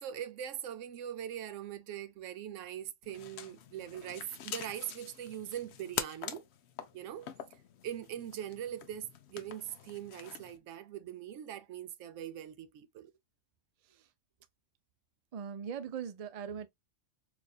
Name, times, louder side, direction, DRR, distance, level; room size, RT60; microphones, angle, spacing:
voice 1, 0.0-6.4 6.9-7.3 7.8-13.1, right 10 dB, 80° right, 1.0 m, -42 dB
sound 1, 3.0-10.6, left 8 dB, 65° left, 0.8 m, -45 dB
voice 2, 15.3-16.7, right 7 dB, 55° right, 0.4 m, -40 dB
4.6 x 2.5 x 2.3 m
omnidirectional pair, 1.3 m